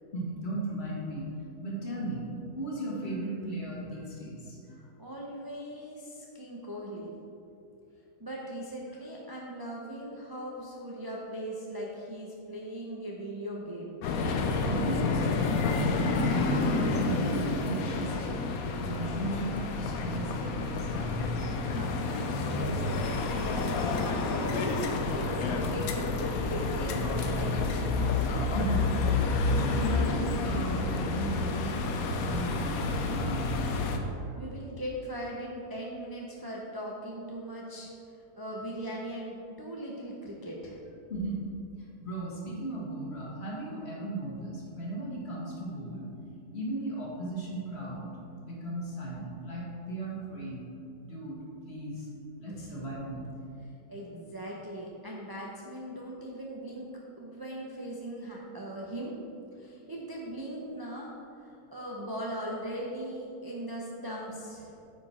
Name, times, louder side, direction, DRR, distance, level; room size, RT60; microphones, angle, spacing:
voice 1, 0.1-1.3 1.6-2.2 2.5-4.8 14.6-15.7 16.1-18.3 18.8-21.5 28.5-28.9 29.1-33.6 34.2-34.3 41.1-41.4 42.0-46.1 46.5-48.1 48.4-50.6 51.0-51.4 51.6-52.1 52.4-53.3, right 1 dB, 45° left, -4 dB, 1.7 m, -36 dB
voice 2, 4.7-7.1 8.2-14.0 21.6-27.8 34.3-40.8 52.5-52.7 53.6-56.9 57.2-59.1 59.5-64.8, equal, 25° right, -4 dB, 0.5 m, -39 dB
sound 1, 14.0-34.0, left 3 dB, 70° left, 1.1 m, -29 dB
9.0 x 5.1 x 4.3 m, 2.7 s
omnidirectional pair, 1.7 m